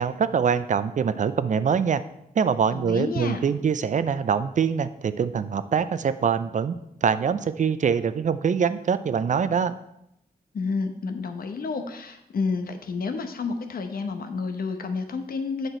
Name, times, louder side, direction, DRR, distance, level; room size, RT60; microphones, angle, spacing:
voice 1, 0.0-2.0 2.4-6.8 7.0-9.7, right 6 dB, 55° right, 13 dB, 0.5 m, -24 dB
voice 2, 2.7-3.4 10.5-15.7, left 4 dB, 70° left, 7 dB, 1.0 m, -30 dB
8.1 x 5.9 x 4.3 m, 0.81 s
cardioid pair, 75°, 16 cm